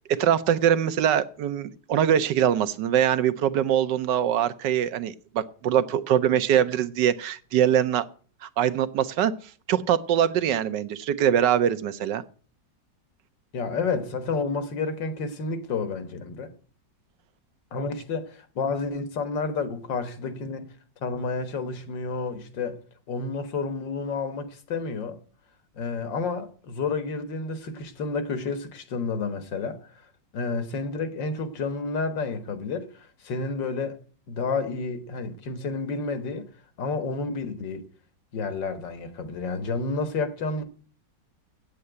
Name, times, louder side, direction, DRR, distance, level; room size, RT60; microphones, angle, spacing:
voice 1, 0.1-8.0 8.4-9.3 9.7-12.2, right 10 dB, 80° right, 1.4 m, -23 dB
voice 2, 13.5-16.5 17.7-20.7 21.0-22.8 23.1-25.2 25.8-29.9 30.3-32.9 33.2-34.0 34.3-36.5 36.8-37.8 38.3-40.6, left 4 dB, 90° left, 2.0 m, -30 dB
8.5 x 7.6 x 8.0 m
omnidirectional pair, 1.9 m